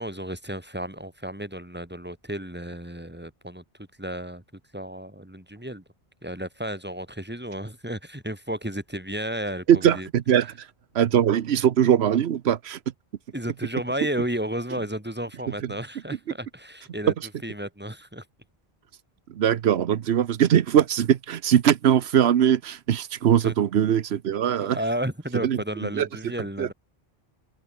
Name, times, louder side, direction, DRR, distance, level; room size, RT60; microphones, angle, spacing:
voice 1, 0.0-4.4 4.7-5.8 6.2-10.1 13.3-17.1 17.4-18.3 23.4-23.5 24.6-26.7, right 1 dB, 10° right, 2.4 m, -33 dB
voice 2, 9.7-10.7 10.9-12.8 15.6-15.7 19.3-24.8 25.4-25.6 25.9-26.1 26.6-26.7, right 9 dB, 85° right, 1.1 m, -21 dB
open air
omnidirectional pair, 1.1 m